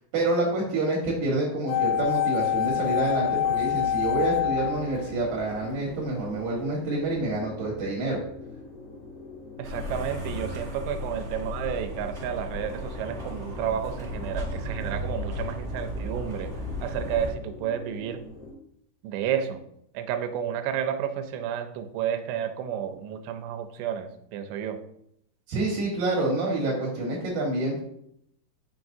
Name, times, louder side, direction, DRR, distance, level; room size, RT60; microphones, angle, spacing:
voice 1, 0.1-8.2 25.5-27.8, right 2 dB, 65° right, -2 dB, 2.8 m, -27 dB
sound 1, 1.7-5.8 6.0-6.1, left 10 dB, 75° left, 2.7 m, -26 dB
sound 2, 2.4-18.5, left 3 dB, 55° left, 1.8 m, -44 dB
sound 3, 9.6-17.3, left 1 dB, 45° right, 0.8 m, -35 dB
voice 2, 9.6-16.5 16.8-18.2 19.0-19.6 19.9-24.8, right 9 dB, 90° right, 7 dB, 2.8 m, -31 dB
7.3 x 6.0 x 2.6 m, 0.73 s
omnidirectional pair, 4.9 m